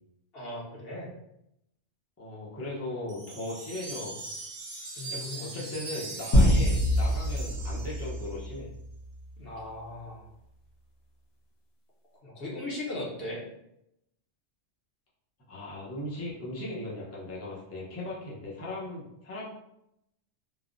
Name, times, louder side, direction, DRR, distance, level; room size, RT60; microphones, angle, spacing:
voice 1, 0.3-1.1 5.0-5.6 6.6-6.8 9.4-10.3 12.2-13.4, left 2 dB, 60° left, -4 dB, 0.9 m, -38 dB
voice 2, 2.2-4.2 5.1-8.7 15.5-19.4, left 1 dB, 20° left, -6 dB, 0.4 m, -38 dB
sound 1, 3.1-8.5, right 3 dB, 50° right, 0.5 m, -41 dB
sound 2, 6.3-9.1, equal, 90° left, 1.3 m, -25 dB
3.4 x 2.0 x 2.4 m, 0.82 s
omnidirectional pair, 1.3 m